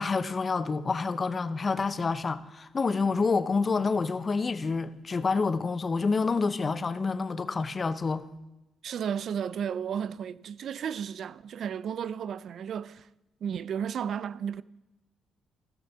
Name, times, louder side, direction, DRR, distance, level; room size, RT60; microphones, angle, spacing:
voice 1, 0.0-8.2, left 4 dB, 35° left, 0.7 m, -28 dB
voice 2, 8.8-13.1 13.4-14.6, right 8 dB, 65° right, 0.4 m, -33 dB
15.0 x 6.6 x 5.9 m
cardioid pair, 90°, 0 cm